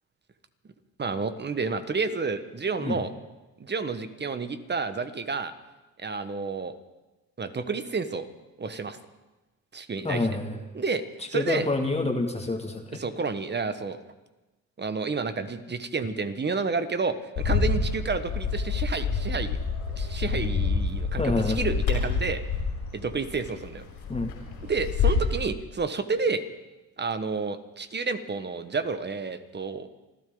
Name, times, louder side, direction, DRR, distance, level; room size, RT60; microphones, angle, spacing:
voice 1, 1.0-3.1 3.6-5.5 6.0-6.7 7.4-8.3 8.6-9.0 9.7-10.3 10.7-11.0 11.3-11.7 12.9-14.0 14.8-19.6 20.0-22.4 22.9-23.8 24.6-26.4 27.0-29.9, right 4 dB, 30° right, 10 dB, 1.4 m, -30 dB
voice 2, 10.0-10.6 11.3-13.0 21.2-21.6 24.1-24.3, left 2 dB, 20° left, 3 dB, 2.3 m, -27 dB
Bird, 17.4-25.3, left 5 dB, 85° left, 5.6 m, -28 dB
27.0 x 12.5 x 3.9 m, 1.1 s
supercardioid pair, 75°, 34 cm